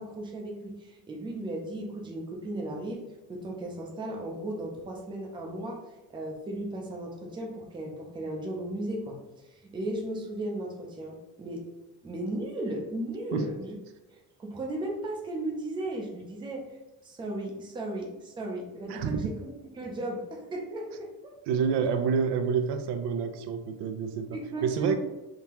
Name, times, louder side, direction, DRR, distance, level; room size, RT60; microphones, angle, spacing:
voice 1, 0.0-3.0 3.3-5.8 6.1-11.6 12.0-13.8 14.1-16.8 17.0-21.1 24.3-25.0, right 1 dB, 10° right, 0 dB, 0.4 m, -36 dB
voice 2, 18.9-19.2 21.5-25.0, right 6 dB, 80° right, 8 dB, 0.5 m, -28 dB
3.6 x 2.7 x 2.9 m, 1.1 s
cardioid pair, 175°, 41 cm